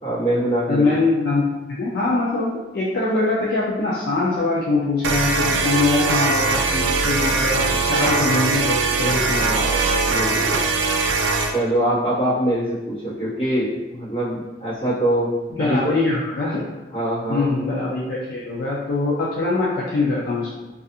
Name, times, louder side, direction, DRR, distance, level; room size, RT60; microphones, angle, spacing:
voice 1, 0.0-0.8 9.3-10.7 11.5-15.9 16.9-17.5, right 1 dB, 30° left, -11 dB, 1.1 m, -24 dB
voice 2, 0.7-9.6 15.6-16.6 17.3-20.6, left 3 dB, 60° left, -6 dB, 0.4 m, -23 dB
sound 1, 5.0-11.5, right 3 dB, 85° right, 0.3 m, -21 dB
2.4 x 2.4 x 2.6 m, 1.1 s
head